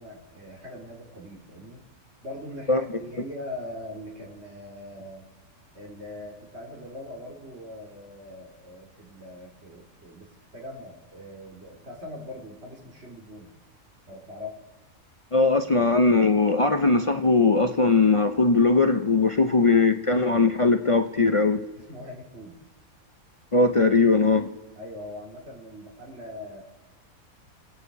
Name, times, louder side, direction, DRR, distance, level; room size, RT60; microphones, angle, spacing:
voice 1, 0.0-1.8 2.2-5.3 5.7-10.3 10.5-13.5 14.1-14.6 19.5-19.6 21.8-22.6 24.7-26.6, left 1 dB, 50° right, 0 dB, 2.9 m, -41 dB
voice 2, 15.3-21.6 23.5-24.5, left 3 dB, 55° left, 7 dB, 0.3 m, -20 dB
29.0 x 9.7 x 4.7 m, 1.2 s
omnidirectional pair, 1.5 m